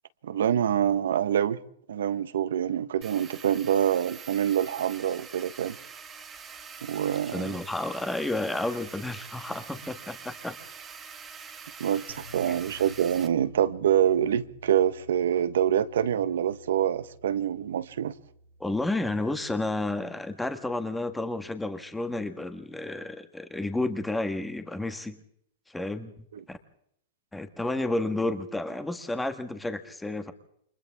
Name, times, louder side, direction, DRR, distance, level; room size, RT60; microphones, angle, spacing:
voice 1, 0.2-1.6 1.9-5.8 6.8-7.5 11.8-18.1 26.3-26.4, right 10 dB, 85° right, 1.3 m, -26 dB
sound 1, 3.0-13.3, right 6 dB, 15° right, 1.8 m, -45 dB
voice 2, 7.3-10.6 12.5-12.8 18.6-25.2 25.7-26.6 27.3-30.3, left 2 dB, 5° left, 1.6 m, -31 dB
sound 2, 12.1-20.2, left 1 dB, 55° left, 6.7 m, -51 dB
29.5 x 26.0 x 3.7 m
supercardioid pair, 155°, 0 cm